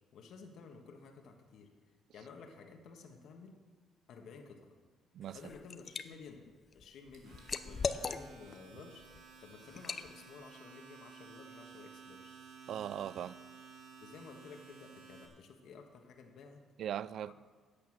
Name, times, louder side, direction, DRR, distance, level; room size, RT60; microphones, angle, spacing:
voice 1, 0.1-1.7 2.1-3.6 4.1-4.8 5.3-6.4 6.7-9.0 9.4-12.3 14.0-16.6 17.3-17.4, left 5 dB, 70° left, 1.5 m, -53 dB
Liquid, 5.2-6.0 6.5-8.6 9.0-9.2 9.8-10.1, left 5 dB, 35° left, 0.6 m, -38 dB
Domestic sounds home sounds, 7.1-15.3, right 5 dB, 85° right, 2.2 m, -55 dB
voice 2, 12.7-13.4 16.8-17.3, right 10 dB, 65° right, 0.4 m, -39 dB
11.0 x 8.6 x 7.3 m
cardioid pair, 115°, 0 cm